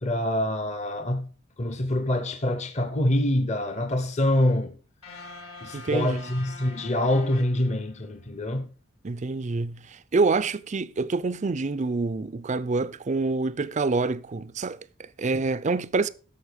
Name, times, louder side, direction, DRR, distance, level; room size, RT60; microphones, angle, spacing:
voice 1, 0.0-1.3 1.6-4.7 5.6-8.7, left 1 dB, 30° left, 0.8 m, -25 dB
sound 1, 5.0-8.3, left 2 dB, 75° left, 3.2 m, -44 dB
voice 2, 5.7-6.2 9.0-16.1, right 3 dB, 35° right, 0.5 m, -27 dB
11.0 x 7.1 x 5.1 m
head